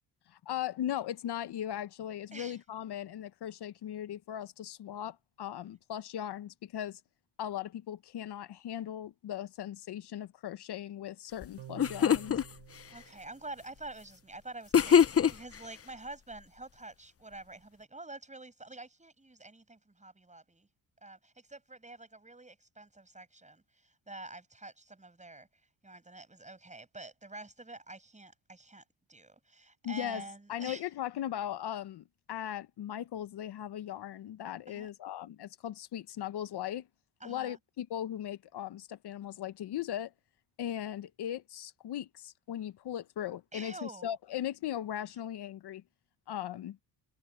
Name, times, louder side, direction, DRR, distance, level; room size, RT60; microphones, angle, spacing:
voice 1, 0.3-7.0 7.4-12.4 29.8-30.2 30.5-36.9 37.2-40.1 40.6-45.8 46.3-46.8, left 11 dB, 60° left, 1.2 m, -38 dB
sound 1, 11.4-11.5 11.8-12.4 14.7-15.6, left 8 dB, 30° left, 0.9 m, -23 dB
sound 2, 11.6-14.2, right 12 dB, 70° right, 6.3 m, -52 dB
voice 2, 12.9-20.7 21.0-25.5 25.8-28.8 29.1-30.8 34.7-34.9 37.2-37.6 43.5-44.1, right 2 dB, 15° right, 6.4 m, -47 dB
supercardioid pair, 80°, 44 cm